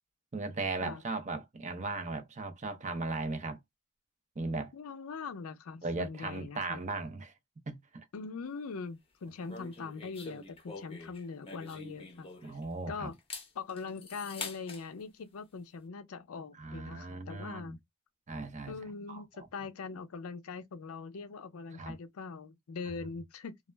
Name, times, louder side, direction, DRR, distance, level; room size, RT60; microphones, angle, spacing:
voice 1, 0.3-3.6 4.4-4.7 5.8-7.3 7.7-8.0 12.4-13.1 16.6-17.7 18.3-18.8 19.1-19.5 21.8-22.0, right 3 dB, 35° right, 0.5 m, -37 dB
voice 2, 4.7-6.8 8.1-12.6 12.9-13.2 13.5-17.8 18.7-23.6, left 4 dB, 70° left, 0.4 m, -42 dB
sound 1, 9.5-12.7 13.1-14.8, left 4 dB, 25° left, 0.6 m, -45 dB
2.3 x 2.0 x 3.2 m
head